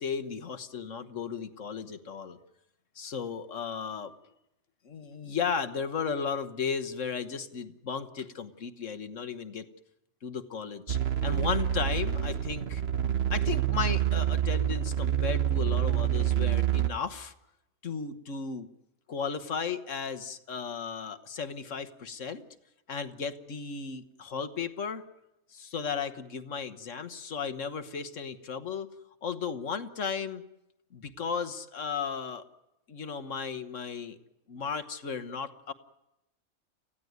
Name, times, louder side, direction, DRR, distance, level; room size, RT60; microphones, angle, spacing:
voice 1, 0.0-2.4 2.9-4.1 4.8-9.7 10.2-12.8 13.3-17.3 17.8-18.7 19.1-22.4 22.9-25.0 25.5-28.9 29.2-30.4 30.9-32.4 32.9-34.2 34.5-35.7, left 6 dB, 60° left, 10 dB, 1.5 m, -35 dB
sound 1, 10.9-16.9, right 10 dB, 50° right, 1.2 m, -27 dB
29.5 x 15.5 x 9.5 m, 0.92 s
omnidirectional pair, 1.5 m